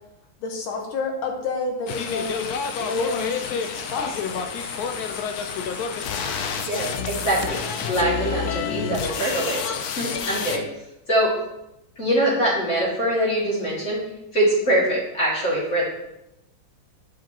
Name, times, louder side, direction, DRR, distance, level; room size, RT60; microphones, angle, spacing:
voice 1, 0.4-2.5 2.8-4.6, left 3 dB, 90° left, 2 dB, 2.0 m, -30 dB
radio sound, 1.9-10.6, left 6 dB, 75° left, 0.9 m, -29 dB
voice 2, 6.7-7.6 7.9-10.7 11.1-11.3 12.0-14.0 14.3-15.9, right 1 dB, 35° left, -5 dB, 2.4 m, -23 dB
10.0 x 5.1 x 2.8 m, 0.89 s
omnidirectional pair, 2.2 m